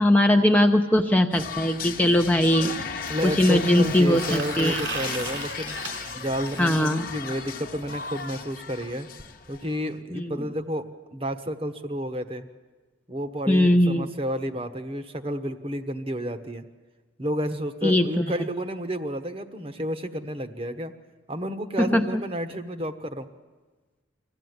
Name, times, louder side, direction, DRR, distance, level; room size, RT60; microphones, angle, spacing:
voice 1, 0.0-2.7 3.2-4.8 6.6-7.1 10.1-10.4 13.5-14.1 17.8-18.3 21.8-22.2, left 1 dB, 10° left, 4 dB, 0.7 m, -20 dB
sound 1, 1.0-1.1 3.0-6.9 8.8-8.9 9.2-9.3 9.5-9.7 10.6-10.7, right 4 dB, 85° right, 4.1 m, -38 dB
sound 2, 1.3-9.9, left 5 dB, 50° left, 1.1 m, -35 dB
voice 2, 3.1-5.7 6.1-9.1 9.5-10.9 11.1-12.5 13.1-16.6 17.2-20.9 21.3-23.3, equal, 30° right, 7 dB, 1.1 m, -31 dB
24.0 x 15.5 x 9.5 m, 1.3 s
head